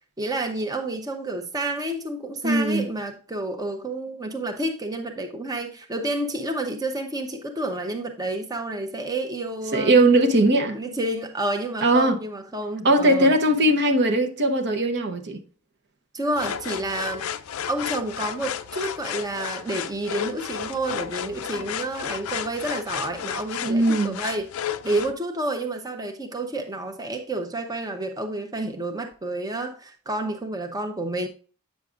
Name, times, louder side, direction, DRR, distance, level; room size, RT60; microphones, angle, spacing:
voice 1, 0.2-10.0 10.7-13.3 16.1-17.3 17.7-24.5 24.8-31.3, right 1 dB, 15° right, 0.7 m, -29 dB
voice 2, 2.4-2.9 9.7-10.8 11.8-12.2 12.8-15.4 23.6-24.2, right 1 dB, 50° right, 0.8 m, -19 dB
sound 1, 16.4-25.1, left 9 dB, 70° left, 0.4 m, -32 dB
8.3 x 6.4 x 2.4 m
head